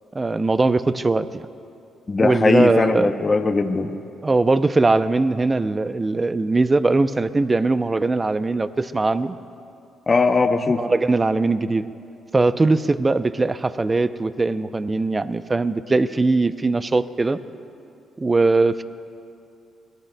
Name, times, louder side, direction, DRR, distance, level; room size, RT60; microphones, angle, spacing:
voice 1, 0.1-1.5 2.2-3.1 4.2-9.4 10.8-11.9 12.3-17.4 18.2-18.8, right 3 dB, 25° right, 13 dB, 0.5 m, -20 dB
voice 2, 2.1-3.9 10.1-10.8, left 3 dB, 30° left, 5 dB, 0.7 m, -19 dB
25.0 x 19.0 x 2.2 m, 2.5 s
cardioid pair, 90°, 0 cm